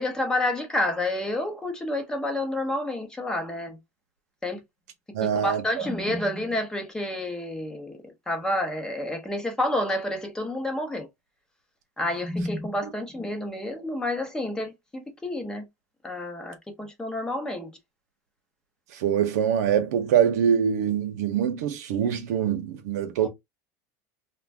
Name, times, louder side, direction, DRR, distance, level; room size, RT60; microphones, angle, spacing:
voice 1, 0.0-3.8 4.4-4.6 5.2-8.0 8.3-11.1 12.0-15.7 16.0-17.7 23.2-23.3, left 1 dB, 10° left, 0.7 m, -29 dB
voice 2, 5.1-5.6 19.0-23.3, right 8 dB, 85° right, 0.7 m, -24 dB
2.5 x 2.2 x 3.3 m
supercardioid pair, 140°, 9 cm